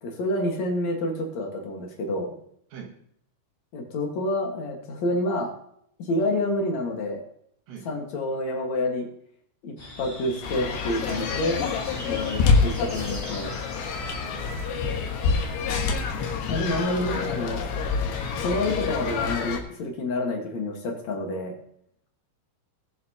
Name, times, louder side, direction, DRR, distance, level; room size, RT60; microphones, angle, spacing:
voice 1, 0.0-2.3 3.7-5.5 6.0-7.2 7.9-9.1 9.6-11.6 11.9-13.5 16.5-17.6 18.4-21.5, left 1 dB, 55° left, 1 dB, 2.3 m, -28 dB
sound 1, 9.8-14.2, left 1 dB, 35° left, 0.9 m, -41 dB
sound 2, 10.4-19.6, left 5 dB, 90° left, 3.6 m, -27 dB
voice 2, 14.1-14.9, right 7 dB, 90° right, -1 dB, 4.1 m, -44 dB
21.0 x 7.2 x 2.9 m, 0.69 s
omnidirectional pair, 4.9 m